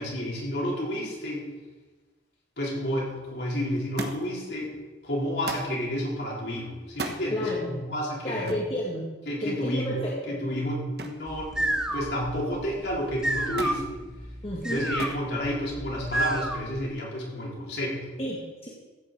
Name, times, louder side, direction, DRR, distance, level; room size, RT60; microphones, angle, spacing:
voice 1, 0.0-1.5 2.6-4.7 5.0-8.6 9.3-14.0 14.7-18.1, equal, 65° left, -4 dB, 4.2 m, -31 dB
Thump thud, 4.0-4.4 5.5-5.8 6.9-7.2 8.5-8.7 11.0-11.3 11.7-12.2 13.6-13.8 15.0-15.3 16.2-16.7 17.7-17.8, right 3 dB, 55° right, 1.2 m, -36 dB
voice 2, 7.3-7.7 8.2-9.1 9.4-10.4 14.4-14.9 18.2-18.7, left 1 dB, 30° left, -4 dB, 2.0 m, -31 dB
sound 1, 11.3-16.9, right 1 dB, 5° right, 0.7 m, -31 dB
14.5 x 6.2 x 7.7 m, 1.2 s
head